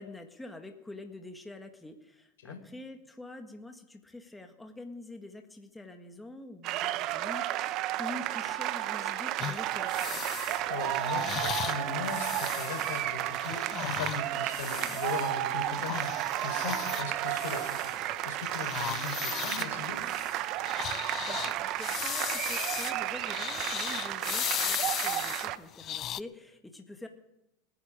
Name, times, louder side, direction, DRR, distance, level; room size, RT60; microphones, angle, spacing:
voice 1, 0.0-10.2 21.2-27.1, left 2 dB, 10° left, 5 dB, 1.7 m, -46 dB
sound 1, 6.6-25.6, right 14 dB, 50° right, 0.9 m, -32 dB
sound 2, 9.4-15.3 15.7-18.2 18.4-26.2, left 12 dB, 40° left, 0.5 m, -37 dB
voice 2, 10.7-17.9 18.2-20.0, left 5 dB, 80° left, 5 dB, 4.2 m, -38 dB
29.0 x 9.8 x 5.0 m, 0.93 s
hypercardioid pair, 100°, 0 cm